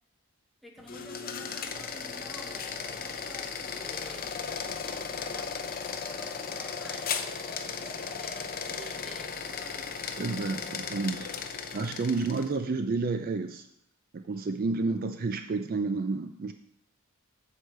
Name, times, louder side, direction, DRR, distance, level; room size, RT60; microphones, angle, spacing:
voice 1, 0.6-10.0, equal, ahead, 2 dB, 0.9 m, -50 dB
sound 1, 0.8-12.6, left 6 dB, 40° left, 0.7 m, -36 dB
voice 2, 10.2-11.3 11.7-13.7 14.1-16.5, right 3 dB, 40° right, 8 dB, 0.4 m, -30 dB
8.0 x 4.8 x 6.7 m, 0.75 s
head